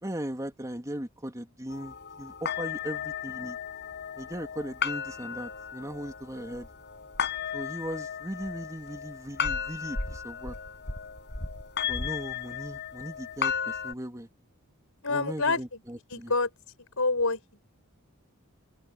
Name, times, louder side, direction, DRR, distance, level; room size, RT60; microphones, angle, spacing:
voice 1, 0.0-3.6 4.2-6.7 7.5-10.5 11.8-14.3 15.1-16.3, right 1 dB, 15° right, 3.1 m, -38 dB
sound 1, 1.7-13.9, left 7 dB, 50° left, 6.5 m, -35 dB
voice 2, 15.0-15.6 16.1-16.5 17.0-17.4, left 3 dB, 65° left, 5.9 m, -26 dB
open air
head